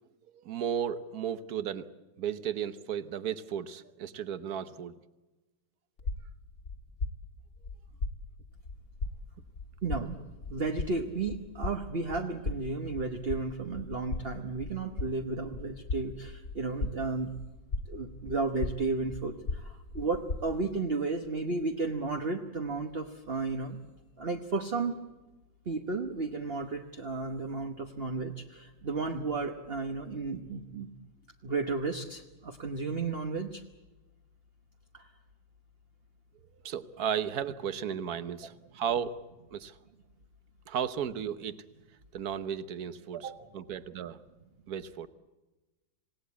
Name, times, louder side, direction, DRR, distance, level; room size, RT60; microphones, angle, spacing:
voice 1, 0.3-1.9 2.2-5.0 36.6-39.2 39.5-39.8 40.7-41.6 42.1-44.2 44.7-45.1, right 8 dB, 55° right, 13 dB, 1.3 m, -34 dB
sound 1, 6.0-20.8, left 3 dB, 40° left, 1.7 m, -39 dB
voice 2, 9.8-10.2 10.5-17.3 17.9-23.8 24.2-25.0 25.6-30.9 31.4-33.6 34.9-35.1 43.1-43.5, right 3 dB, 35° right, 4 dB, 1.1 m, -33 dB
27.0 x 18.0 x 8.4 m, 1.1 s
omnidirectional pair, 2.2 m